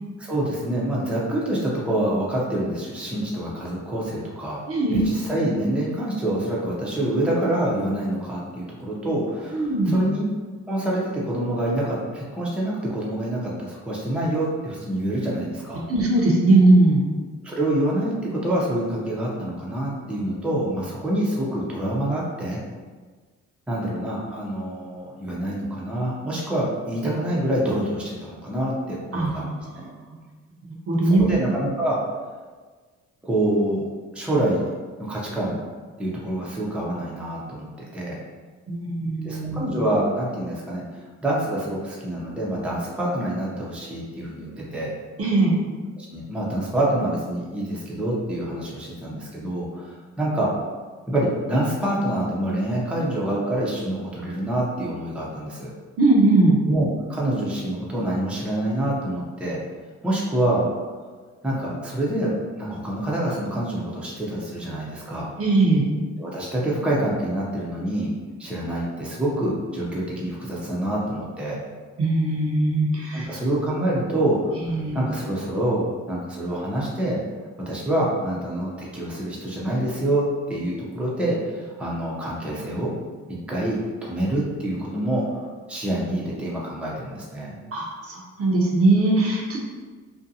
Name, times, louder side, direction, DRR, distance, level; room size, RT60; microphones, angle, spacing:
voice 1, 0.2-4.6 4.9-10.2 10.7-15.8 17.4-22.6 23.7-29.9 31.0-32.0 33.2-34.7 35.0-35.7 36.0-38.2 39.2-40.8 41.2-44.9 46.0-50.5 51.1-55.7 56.7-59.6 60.0-60.6 61.4-65.3 66.2-68.1 68.4-71.6 73.1-77.2 77.7-82.9 83.3-87.6, right 1 dB, 5° right, -5 dB, 0.5 m, -26 dB
voice 2, 4.7-5.0 9.5-10.0 15.9-17.0 29.1-29.5 30.9-31.4 38.7-39.7 45.2-45.6 56.0-56.6 65.4-65.9 72.0-73.3 74.6-75.0 87.7-89.6, right 2 dB, 50° right, -2 dB, 0.7 m, -20 dB
2.5 x 2.2 x 2.7 m, 1.4 s
cardioid pair, 90°, 30 cm